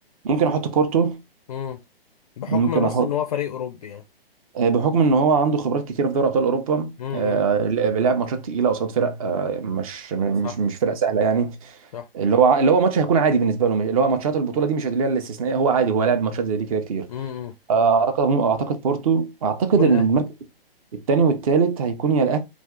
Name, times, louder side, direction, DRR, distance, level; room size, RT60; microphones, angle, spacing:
voice 1, 0.2-1.2 2.5-3.1 4.5-11.7 12.1-17.1 17.7-20.2 20.9-22.4, right 5 dB, 35° right, 0.6 m, -21 dB
voice 2, 1.5-1.8 2.4-4.0 7.0-7.4 10.4-10.6 11.9-12.1 17.1-17.5 19.7-20.1, left 10 dB, 40° left, 0.4 m, -29 dB
2.5 x 2.4 x 3.4 m
figure-of-eight pair, 125°, 30 cm